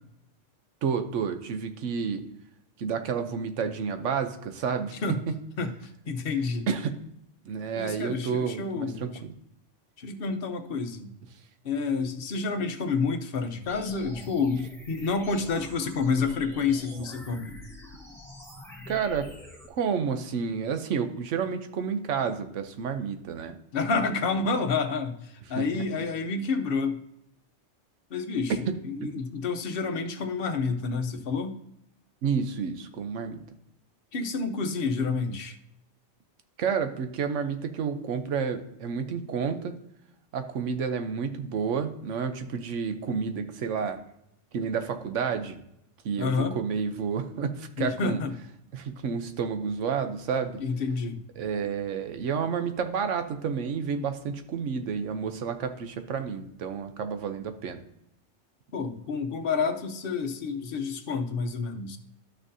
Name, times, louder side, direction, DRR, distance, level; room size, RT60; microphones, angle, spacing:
voice 1, 0.8-2.2 2.8-5.3 6.7-7.0 7.4-9.4 18.9-19.3 19.7-23.6 24.4-24.5 25.5-25.9 28.7-29.1 32.2-33.4 36.6-39.8 40.3-44.0 44.5-45.6 46.0-48.2 48.7-50.6 51.3-57.8, right 6 dB, 90° right, 8 dB, 1.1 m, -30 dB
voice 2, 6.1-6.7 7.7-9.2 10.0-11.1 11.6-17.6 23.7-27.0 28.1-31.6 34.1-35.6 46.2-46.6 47.8-48.3 50.6-51.2 58.7-62.0, left 4 dB, 55° left, 6 dB, 0.9 m, -29 dB
sound 1, 13.7-19.7, left 1 dB, ahead, 1.2 m, -45 dB
12.0 x 6.1 x 2.7 m, 0.78 s
omnidirectional pair, 1.2 m